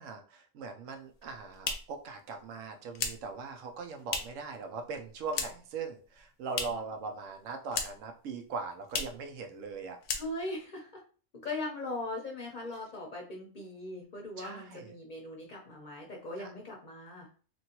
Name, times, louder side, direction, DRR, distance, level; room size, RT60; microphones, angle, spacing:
voice 1, 0.0-10.0 14.4-14.9 16.4-16.5, right 4 dB, 85° right, 5 dB, 1.0 m, -40 dB
sound 1, 1.1-4.5 4.8-5.8 6.0-7.0 7.2-8.2 8.4-8.5 8.8-9.3 9.6-9.8 10.0-10.7, left 5 dB, 80° left, 0.9 m, -37 dB
voice 2, 10.1-11.0 11.4-17.3, left 2 dB, 45° left, 0 dB, 0.7 m, -40 dB
3.0 x 2.6 x 2.8 m, 0.39 s
omnidirectional pair, 1.3 m